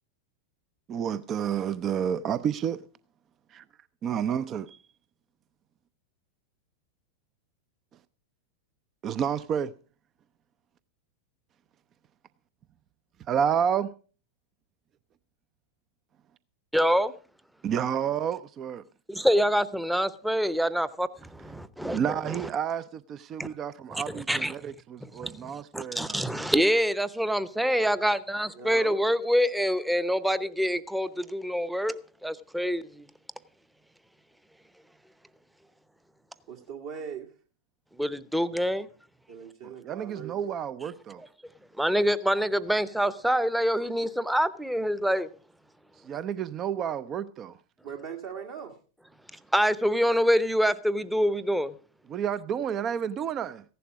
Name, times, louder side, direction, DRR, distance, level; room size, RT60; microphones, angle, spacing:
voice 1, 0.9-2.8 3.5-3.6 4.0-4.8 9.0-9.7 13.3-14.0 17.6-18.8 21.9-26.2 39.6-41.2 46.0-47.6 52.1-53.6, right 8 dB, 30° right, 0.5 m, -30 dB
voice 2, 16.7-17.1 19.1-22.0 22.3-22.4 23.4-23.5 24.1-24.5 25.0-33.1 38.0-38.9 41.8-45.3 49.5-51.7, equal, 5° right, 0.8 m, -26 dB
voice 3, 28.5-29.0 36.5-37.3 39.3-40.5 47.8-48.8, right 7 dB, 50° right, 1.8 m, -40 dB
15.5 x 11.0 x 4.7 m
figure-of-eight pair, 90°, 0 cm